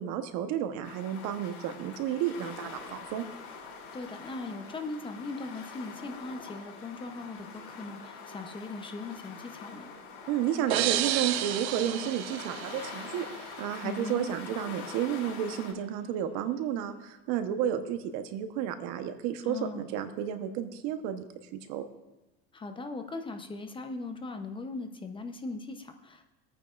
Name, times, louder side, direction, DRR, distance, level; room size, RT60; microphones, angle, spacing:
voice 1, 0.0-3.2 10.3-21.2 21.7-21.8, right 9 dB, 65° right, 8 dB, 1.1 m, -32 dB
sound 1, 0.8-15.7, left 5 dB, 85° left, 4.8 m, -45 dB
voice 2, 3.9-9.9 13.8-14.3 19.4-19.8 22.5-26.2, left 3 dB, 15° left, 6 dB, 0.8 m, -39 dB
sound 2, 10.7-13.5, right 13 dB, 90° right, 0.7 m, -31 dB
23.0 x 9.0 x 2.5 m, 1.0 s
supercardioid pair, 130°, 31 cm